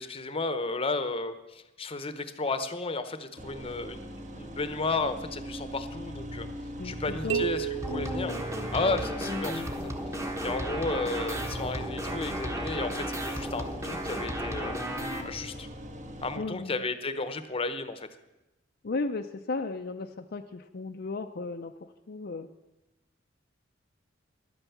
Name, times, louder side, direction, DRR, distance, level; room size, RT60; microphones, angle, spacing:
voice 1, 0.0-6.5 6.8-8.4 8.7-9.9 10.4-14.8 15.2-15.7 16.2-18.1, left 3 dB, 30° left, 11 dB, 0.8 m, -33 dB
sound 1, 3.4-16.4, equal, 40° right, 1.3 m, -40 dB
voice 2, 6.8-7.5 16.4-16.8 18.8-21.7 22.1-22.5, left 3 dB, 55° left, 5 dB, 0.5 m, -35 dB
sound 2, 7.3-9.2, right 11 dB, 70° right, 0.5 m, -34 dB
sound 3, 7.8-15.2, equal, 15° right, 1.1 m, -34 dB
11.5 x 9.1 x 7.2 m, 1.0 s
head